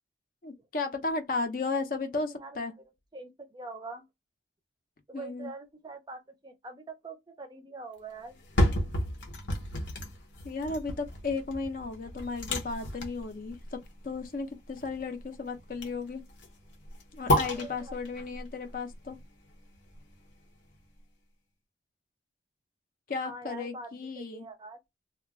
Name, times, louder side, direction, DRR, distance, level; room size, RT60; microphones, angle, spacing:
voice 1, 0.4-2.7 5.1-5.5 10.4-13.8 14.0-16.2 17.1-19.2 23.1-24.5, left 3 dB, 50° left, 0.5 m, -34 dB
voice 2, 2.1-2.6 3.1-4.0 5.1-8.4 17.6-18.0 23.2-24.8, right 3 dB, 25° right, 0.4 m, -44 dB
sound 1, 8.3-20.3 20.7-20.8, left 1 dB, 80° left, 0.8 m, -33 dB
2.3 x 2.2 x 3.4 m
head